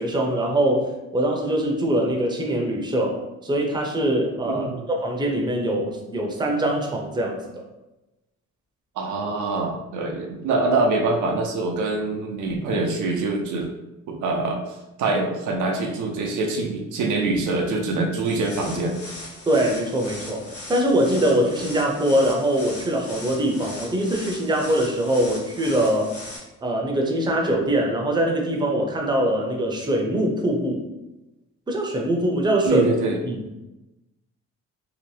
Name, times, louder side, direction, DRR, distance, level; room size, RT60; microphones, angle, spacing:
voice 1, 0.0-7.4 19.5-26.1 26.6-30.8 31.7-32.9 33.2-33.4, right 1 dB, 15° right, 0 dB, 0.6 m, -23 dB
voice 2, 4.5-4.8 9.0-13.7 14.1-14.6 15.0-19.0 32.7-33.2, right 3 dB, 80° right, 1 dB, 0.5 m, -24 dB
sound 1, 18.2-26.4, left 2 dB, 70° left, 1.0 m, -39 dB
2.7 x 2.1 x 3.1 m, 0.99 s
cardioid pair, 90°, 30 cm